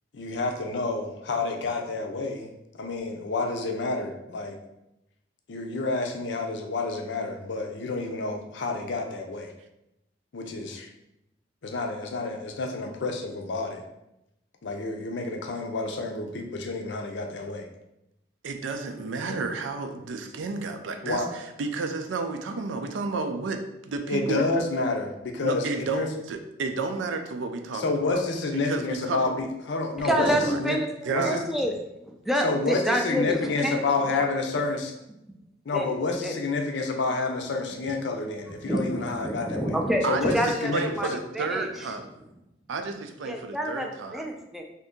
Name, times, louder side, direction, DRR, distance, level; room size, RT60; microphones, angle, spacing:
voice 1, 0.1-2.5 2.8-4.6 5.5-9.5 10.3-10.9 11.6-13.8 14.6-17.7 19.3-19.4 21.0-21.3 24.1-26.1 27.7-30.3 30.6-30.8 31.1-31.4 32.4-34.9 35.7-39.8 40.1-40.3 40.6-40.8, left 3 dB, 65° left, 3 dB, 0.5 m, -29 dB
voice 2, 18.4-24.5 25.4-28.2 28.6-29.2 30.2-30.6 31.0-31.5 40.0-42.0 42.7-44.3, right 4 dB, 80° right, 6 dB, 0.4 m, -31 dB
voice 3, 30.0-31.7 32.1-33.8 34.1-34.3 35.7-35.9 36.2-36.4 38.6-40.7 41.0-41.1 41.3-41.9 43.2-44.6, equal, ahead, 2 dB, 0.3 m, -28 dB
2.7 x 2.6 x 3.6 m, 0.86 s
head